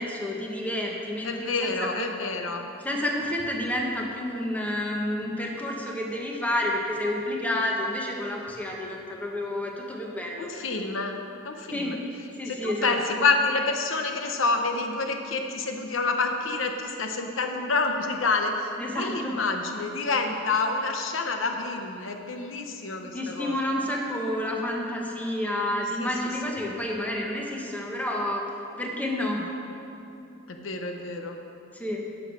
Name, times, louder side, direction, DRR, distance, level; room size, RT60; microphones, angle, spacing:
voice 1, 0.0-1.9 2.8-10.5 11.7-12.0 12.3-13.0 18.8-19.4 23.1-28.5 28.8-29.5 31.7-32.1, left 1 dB, 10° left, -1 dB, 1.2 m, -30 dB
voice 2, 1.2-2.7 10.4-11.1 11.4-12.0 12.5-23.6 26.0-26.1 26.5-26.7 30.5-31.4, left 3 dB, 85° left, 4 dB, 0.8 m, -28 dB
10.5 x 6.3 x 6.2 m, 2.7 s
head